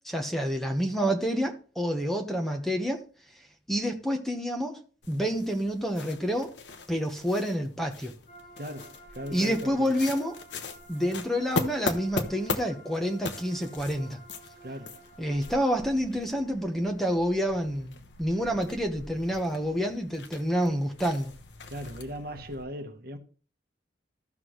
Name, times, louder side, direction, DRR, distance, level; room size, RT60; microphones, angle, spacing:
voice 1, 0.0-3.0 3.7-4.8 5.1-6.5 6.9-8.1 9.3-10.4 10.9-14.2 15.2-21.3, equal, ahead, 1.1 m, -28 dB
sound 1, 5.0-22.6, left 3 dB, 70° left, 1.0 m, -40 dB
sound 2, 8.3-15.9, right 2 dB, 55° left, 5.2 m, -51 dB
voice 2, 8.6-9.9 14.6-15.0 21.6-23.2, equal, 50° right, 1.2 m, -38 dB
14.5 x 6.0 x 3.1 m
head